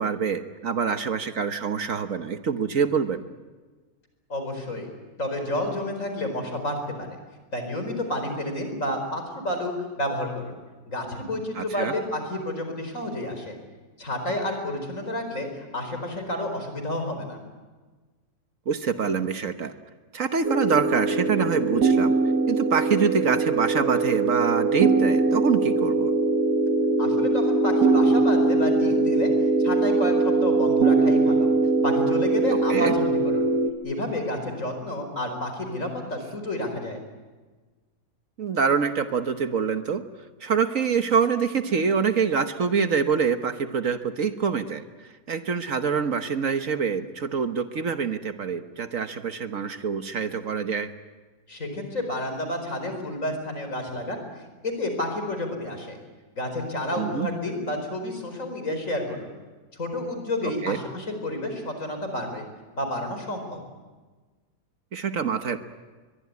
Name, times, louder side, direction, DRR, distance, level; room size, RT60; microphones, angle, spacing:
voice 1, 0.0-3.2 11.6-11.9 18.7-19.7 20.1-22.1 22.5-26.1 32.7-32.9 38.4-40.0 40.4-44.8 45.3-50.9 57.0-57.3 60.6-60.8 64.9-65.6, right 6 dB, 60° right, 8 dB, 1.5 m, -25 dB
voice 2, 4.3-4.9 5.2-7.1 7.5-10.6 10.8-13.6 14.0-17.4 27.0-29.3 29.6-31.5 31.8-33.5 33.8-37.0 51.5-54.2 54.6-56.0 56.4-59.3 59.7-62.4 62.7-63.6, left 1 dB, 55° left, 6 dB, 5.0 m, -30 dB
sound 1, 20.4-33.7, right 3 dB, 75° right, 2.1 m, -22 dB
23.0 x 22.5 x 9.5 m, 1.3 s
omnidirectional pair, 1.7 m